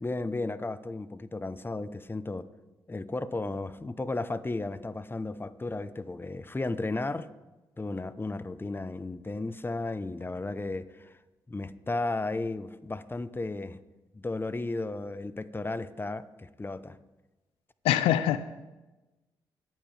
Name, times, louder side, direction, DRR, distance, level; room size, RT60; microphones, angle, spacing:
voice 1, 0.0-2.5 2.9-7.3 7.8-11.1 11.5-13.8 14.1-17.0, left 2 dB, 25° left, 14 dB, 0.9 m, -34 dB
voice 2, 17.8-18.4, left 12 dB, 85° left, 13 dB, 0.4 m, -23 dB
23.0 x 9.2 x 3.4 m, 1.1 s
supercardioid pair, 45°, 9 cm